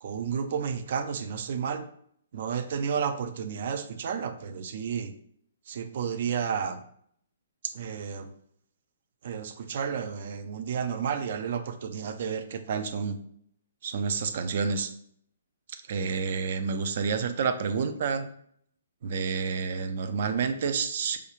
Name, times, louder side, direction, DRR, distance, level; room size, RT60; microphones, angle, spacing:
voice 1, 0.0-1.9 2.3-5.2 5.7-6.8 7.6-8.3 9.2-13.2 13.8-14.9 15.7-18.3 19.0-21.2, right 6 dB, 55° right, 9 dB, 0.4 m, -30 dB
4.8 x 2.3 x 3.0 m, 0.66 s
figure-of-eight pair, 125°, 0 cm